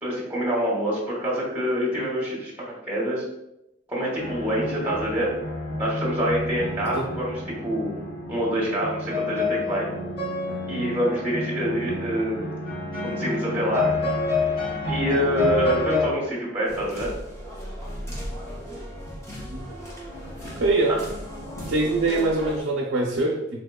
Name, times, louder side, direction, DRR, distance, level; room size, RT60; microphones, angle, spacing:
voice 1, 0.0-3.2 3.9-5.3 5.8-8.0 8.3-9.9 10.7-12.5 13.0-13.9 14.9-17.1, equal, 10° right, -5 dB, 0.9 m, -26 dB
sound 1, 4.2-16.1, left 3 dB, 50° left, 0.9 m, -29 dB
sound 2, 16.7-22.6, equal, 15° left, 0.7 m, -36 dB
voice 2, 20.6-21.0 21.7-23.6, right 2 dB, 90° right, -3 dB, 0.5 m, -23 dB
3.6 x 2.9 x 2.2 m, 0.86 s
head